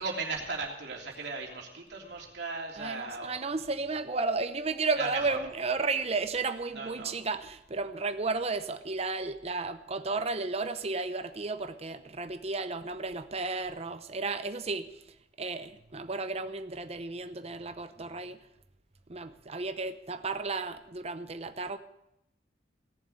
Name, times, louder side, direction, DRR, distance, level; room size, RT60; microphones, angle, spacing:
voice 1, 0.0-3.4 5.0-5.4 6.7-7.1, right 3 dB, 75° right, 3.2 m, -37 dB
voice 2, 2.8-15.0 15.4-18.4 19.1-21.8, right 3 dB, 35° right, 0.8 m, -33 dB
18.0 x 7.2 x 8.0 m
head